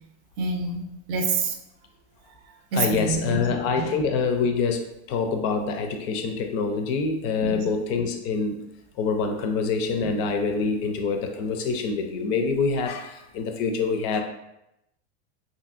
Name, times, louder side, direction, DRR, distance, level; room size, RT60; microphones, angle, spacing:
voice 1, 0.4-1.6 2.7-3.4 3.8-3.9 7.4-7.6 10.0-10.1, right 4 dB, 50° right, 3 dB, 0.5 m, -27 dB
voice 2, 2.7-8.6 9.0-14.2, left 4 dB, 50° left, 5 dB, 0.4 m, -26 dB
2.7 x 2.7 x 2.4 m, 0.87 s
supercardioid pair, 130°, 34 cm